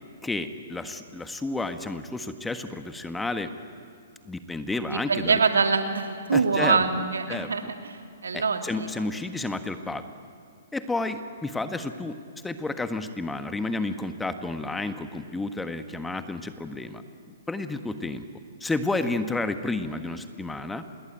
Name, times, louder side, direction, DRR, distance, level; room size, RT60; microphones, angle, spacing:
voice 1, 0.2-3.5 4.2-5.4 6.3-6.8 7.3-7.5 8.3-10.0 10.7-12.2 12.4-17.0 17.3-18.2 18.6-20.8, left 2 dB, 5° left, 9 dB, 1.5 m, -31 dB
voice 2, 4.8-9.1, right 4 dB, 80° right, 5 dB, 2.6 m, -25 dB
27.0 x 21.5 x 9.1 m, 2.3 s
hypercardioid pair, 125°, 0 cm